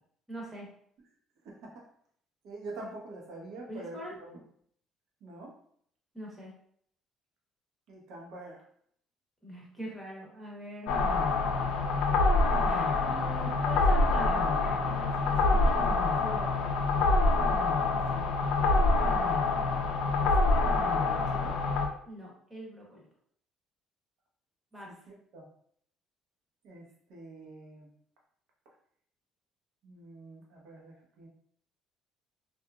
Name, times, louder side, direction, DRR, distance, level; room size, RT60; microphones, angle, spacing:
voice 1, 0.3-0.7 3.7-4.2 6.1-6.5 9.4-10.9 12.6-16.6 22.0-23.1 24.7-24.9, equal, 10° right, -3 dB, 0.8 m, -43 dB
voice 2, 1.4-1.9 2.4-4.4 5.2-5.5 7.9-8.6 17.8-18.5 20.6-21.6 25.1-25.5 26.6-27.9 29.8-31.3, right 2 dB, 70° right, -1 dB, 0.8 m, -46 dB
sound 1, 10.9-21.9, left 3 dB, 80° left, 0.4 m, -26 dB
2.9 x 2.4 x 2.3 m, 0.63 s
cardioid pair, 145°, 0 cm